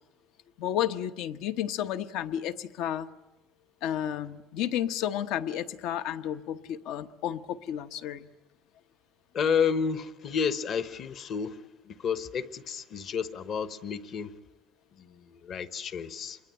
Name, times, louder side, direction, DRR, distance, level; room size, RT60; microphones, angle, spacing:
voice 1, 0.6-3.1 3.8-8.3, left 10 dB, 70° left, 11 dB, 1.0 m, -32 dB
voice 2, 9.3-11.6 11.9-14.3 15.0-16.4, left 6 dB, 40° left, 13 dB, 1.0 m, -31 dB
27.0 x 23.0 x 9.0 m, 1.0 s
cardioid pair, 175°, 0 cm